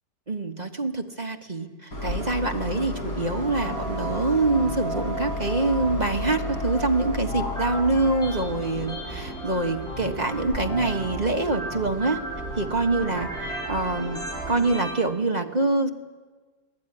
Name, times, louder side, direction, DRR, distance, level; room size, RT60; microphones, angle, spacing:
voice 1, 0.3-12.2 12.6-15.9, right 2 dB, 25° right, 4 dB, 1.3 m, -25 dB
Train, 1.9-14.5, left 2 dB, 50° left, 5.8 m, -35 dB
sound 1, 3.4-14.9, right 2 dB, ahead, 7.8 m, -35 dB
24.5 x 18.5 x 10.0 m, 1.4 s
omnidirectional pair, 2.0 m